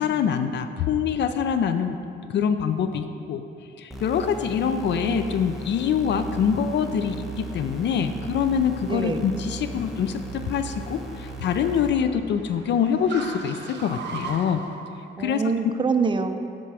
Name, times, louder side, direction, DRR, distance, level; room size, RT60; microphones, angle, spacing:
voice 1, 0.0-2.0 2.3-3.4 3.8-14.6 15.2-15.4, left 7 dB, 65° left, 9 dB, 0.4 m, -25 dB
sound 1, 3.9-11.9, right 3 dB, ahead, 1.0 m, -37 dB
voice 2, 4.6-5.5 8.9-9.3 15.2-16.4, right 4 dB, 25° right, 8 dB, 0.5 m, -26 dB
Car, 6.1-15.0, right 4 dB, 60° right, 0.9 m, -42 dB
10.0 x 4.5 x 4.8 m, 2.5 s
cardioid pair, 90°, 20 cm